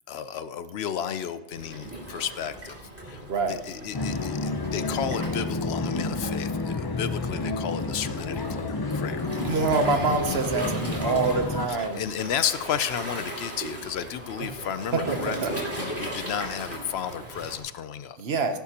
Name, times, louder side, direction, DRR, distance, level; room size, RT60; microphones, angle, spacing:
voice 1, 0.1-2.8 3.0-3.2 3.5-9.6 10.0-10.4 11.7-18.2, left 8 dB, 70° left, 13 dB, 0.8 m, -33 dB
Waves surf, 1.5-17.6, right 1 dB, 10° right, 2.5 m, -38 dB
sound 1, 3.9-11.7, left 3 dB, 30° left, 0.4 m, -30 dB
voice 2, 9.4-12.0 14.4-14.5 14.9-15.5 18.2-18.6, right 4 dB, 65° right, 7 dB, 1.1 m, -26 dB
16.5 x 10.5 x 2.9 m, 1.0 s
omnidirectional pair, 1.2 m